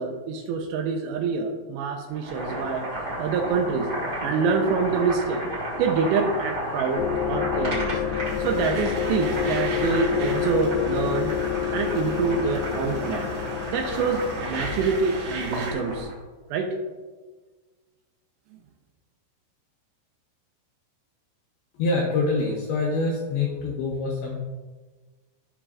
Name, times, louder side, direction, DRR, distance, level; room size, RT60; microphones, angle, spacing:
voice 1, 0.0-2.8 3.2-3.9 4.2-5.4 5.8-7.9 8.4-11.3 11.7-13.3 13.7-16.1 16.5-16.7, right 5 dB, 85° right, 4 dB, 2.8 m, -26 dB
Boiling, 2.1-16.1, right 1 dB, 35° right, 1.9 m, -33 dB
sound 1, 7.0-16.1, left 11 dB, 90° left, 2.3 m, -29 dB
sound 2, 8.2-15.7, right 3 dB, 65° right, 2.0 m, -37 dB
voice 2, 21.7-24.4, left 3 dB, 75° left, -3 dB, 2.4 m, -25 dB
14.5 x 5.7 x 2.4 m, 1.3 s
omnidirectional pair, 5.3 m